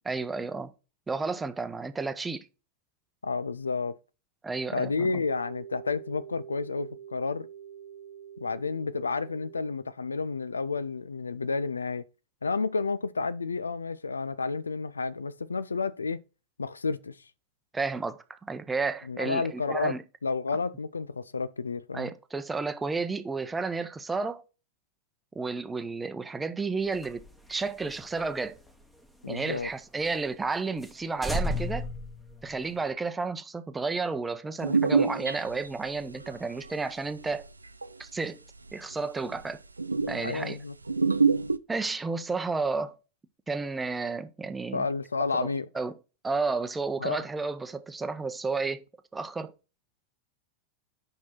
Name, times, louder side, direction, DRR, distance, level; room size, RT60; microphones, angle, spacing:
voice 1, 0.0-0.7 1.1-2.5 4.4-5.1 17.7-20.0 21.9-24.4 25.3-27.2 27.5-28.6 29.3-31.9 32.4-37.5 38.0-38.4 38.7-39.6 40.1-40.6 41.7-43.0 43.5-44.9 45.3-46.0 46.2-48.8 49.1-49.5, right 4 dB, 10° right, 0.7 m, -32 dB
voice 2, 3.2-4.0 4.7-7.5 8.4-12.0 12.4-16.2 16.6-17.2 19.1-20.0 20.2-22.1 29.2-29.7 40.2-40.7 44.7-45.7 47.0-47.2, left 4 dB, 75° left, 0.3 m, -31 dB
sound 1, 4.7-9.6, right 9 dB, 55° right, 0.7 m, -46 dB
sound 2, 26.9-29.7 30.0-30.1 30.5-30.6 30.8-31.0 31.2-32.9, left 1 dB, 5° left, 1.1 m, -35 dB
sound 3, 34.6-36.3 36.6-37.9 38.6-38.7 39.0-39.1 39.3-39.4 39.8-40.4 40.9-41.6, right 4 dB, 80° right, 0.3 m, -26 dB
6.3 x 5.5 x 4.2 m
figure-of-eight pair, 90°, 0 cm